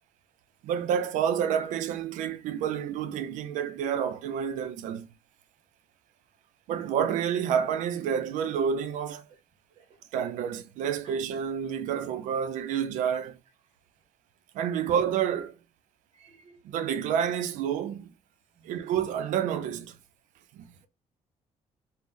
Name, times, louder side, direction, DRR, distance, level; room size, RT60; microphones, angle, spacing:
voice 1, 0.6-5.1 6.7-9.3 10.1-13.4 14.5-15.5 16.6-18.1 18.6-20.0 20.5-20.7, right 8 dB, 85° right, 0.4 m, -29 dB
voice 2, 16.2-16.6 18.6-18.9, right 5 dB, 50° right, 0.8 m, -54 dB
3.6 x 2.0 x 2.5 m
cardioid pair, 155°, 13 cm